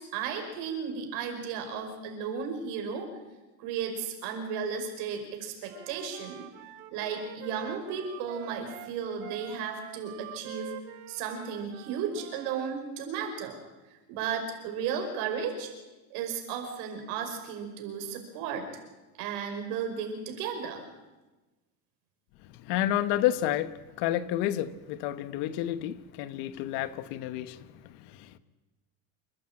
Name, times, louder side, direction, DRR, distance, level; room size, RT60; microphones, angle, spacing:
voice 1, 0.0-3.1 3.6-6.5 6.9-10.7 11.1-13.6 14.1-15.7 16.1-18.7 19.2-20.8, right 6 dB, 70° right, 5.4 m, -34 dB
Wind instrument woodwind instrument, 5.7-12.7, right 13 dB, 85° right, 1.8 m, -45 dB
voice 2, 22.6-28.4, left 12 dB, 65° left, 1.2 m, -30 dB
28.5 x 12.0 x 8.8 m
cardioid pair, 140°, 43 cm